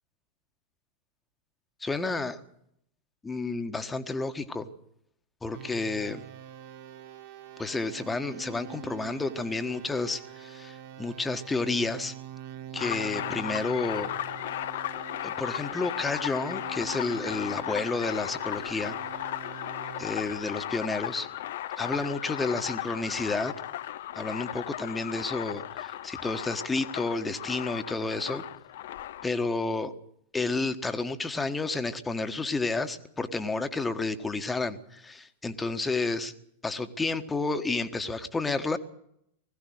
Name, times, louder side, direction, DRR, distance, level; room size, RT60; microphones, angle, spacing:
voice 1, 1.8-2.4 3.2-4.7 5.4-6.2 7.6-12.1 12.7-14.1 15.2-19.0 20.0-21.3 21.8-23.6 24.2-28.4 29.2-29.9 30.3-36.3 36.6-38.8, left 3 dB, 10° left, 9 dB, 1.4 m, -31 dB
sound 1, 5.5-20.1, right 10 dB, 50° right, 2.0 m, -45 dB
sound 2, 12.8-29.3, left 12 dB, 55° left, 0.7 m, -36 dB
20.5 x 16.0 x 8.0 m, 0.74 s
figure-of-eight pair, 90°, 0 cm